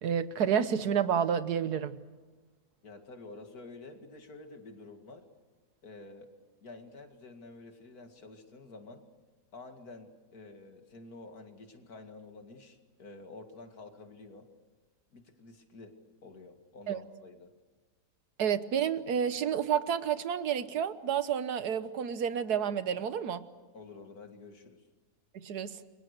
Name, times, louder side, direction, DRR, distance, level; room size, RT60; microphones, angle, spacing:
voice 1, 0.0-2.0 16.9-17.0 18.4-23.4 25.3-25.8, right 8 dB, 80° right, 13 dB, 1.6 m, -30 dB
voice 2, 2.8-5.3 5.8-6.3 6.6-9.0 9.5-14.5 15.1-15.9 16.2-17.5 23.7-24.8, left 3 dB, 70° left, 5 dB, 2.7 m, -49 dB
29.0 x 23.0 x 6.7 m, 1.3 s
omnidirectional pair, 1.7 m